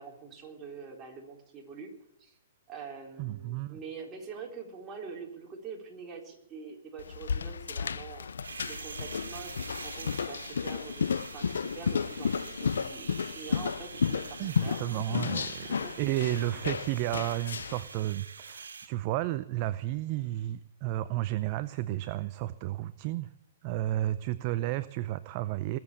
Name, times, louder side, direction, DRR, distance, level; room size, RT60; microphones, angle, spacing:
voice 1, 0.0-1.9 2.2-2.4 2.7-8.3 8.7-15.2 15.6-16.0, right 5 dB, 20° right, 0 dB, 3.8 m, -45 dB
voice 2, 3.2-3.8 14.4-23.3 23.6-25.8, right 15 dB, 40° right, 15 dB, 0.6 m, -32 dB
sound 1, 7.0-17.9, left 6 dB, 85° left, 0.6 m, -33 dB
sound 2, 8.4-18.9, right 5 dB, 90° right, 1.9 m, -45 dB
20.5 x 7.8 x 8.4 m, 0.82 s
hypercardioid pair, 135°, 0 cm